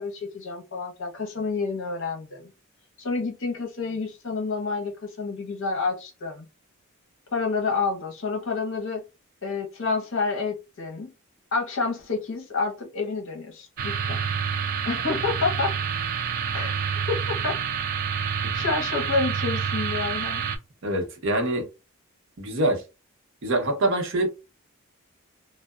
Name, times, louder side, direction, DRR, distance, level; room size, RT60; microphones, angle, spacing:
voice 1, 0.0-2.5 3.0-6.5 7.3-9.0 9.4-11.1 11.5-14.2 14.8-15.7 16.5-16.7 17.1-17.2 17.4-17.6 18.5-20.4, left 4 dB, 65° left, 0.8 m, -29 dB
sound 1, 13.8-20.6, right 7 dB, 45° right, 0.3 m, -28 dB
voice 2, 20.8-21.7 22.4-22.8 23.4-24.3, right 1 dB, 60° right, 0.7 m, -24 dB
2.7 x 2.0 x 2.3 m
head